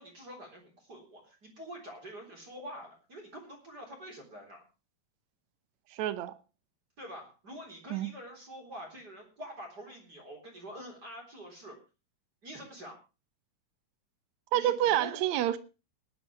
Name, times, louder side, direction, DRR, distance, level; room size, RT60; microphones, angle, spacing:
voice 1, 0.0-4.6 7.0-11.8 12.4-13.0 14.5-15.2, equal, 25° right, 4.2 m, -46 dB
voice 2, 5.9-6.4 7.9-8.1 14.5-15.6, right 12 dB, 70° right, 1.8 m, -28 dB
18.5 x 11.0 x 3.3 m
omnidirectional pair, 4.2 m